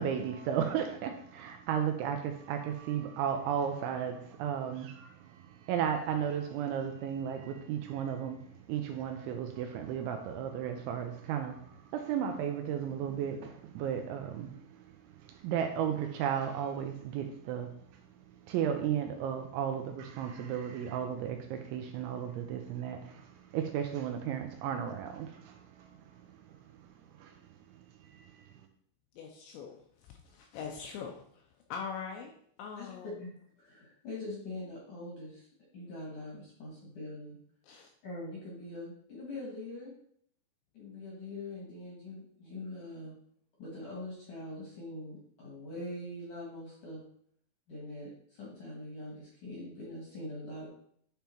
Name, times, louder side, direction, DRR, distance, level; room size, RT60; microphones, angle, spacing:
voice 1, 0.0-26.9 27.1-27.3 27.7-28.5, right 8 dB, 85° right, 4 dB, 2.8 m, -35 dB
voice 2, 29.2-29.8 30.1-31.4 31.7-32.3 32.6-33.1 37.6-37.9, left 6 dB, 85° left, 2 dB, 2.7 m, -42 dB
voice 3, 32.8-35.5 35.7-37.4 38.0-39.9 40.7-43.1 43.6-47.0 47.7-50.7, left 2 dB, 65° left, -4 dB, 2.0 m, -43 dB
10.5 x 3.6 x 4.4 m, 0.65 s
omnidirectional pair, 5.8 m